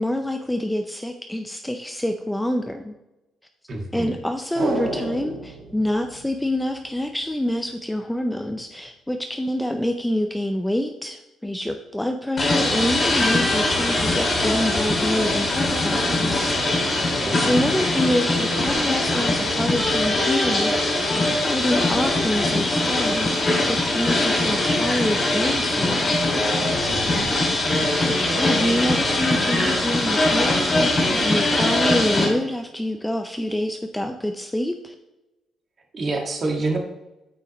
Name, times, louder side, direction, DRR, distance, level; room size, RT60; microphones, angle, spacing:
voice 1, 0.0-2.9 3.9-16.8 17.4-26.2 28.0-34.9, left 1 dB, 5° left, 5 dB, 0.5 m, -26 dB
voice 2, 3.7-4.1 17.2-17.6 26.9-27.3 35.9-36.8, right 2 dB, 35° right, 2 dB, 1.8 m, -27 dB
sound 1, 4.5-7.0 7.3-7.4, right 2 dB, 60° right, 3.1 m, -30 dB
sound 2, 12.4-32.3, left 2 dB, 30° left, 2.8 m, -22 dB
8.9 x 8.5 x 3.1 m, 0.98 s
cardioid pair, 160°, 0 cm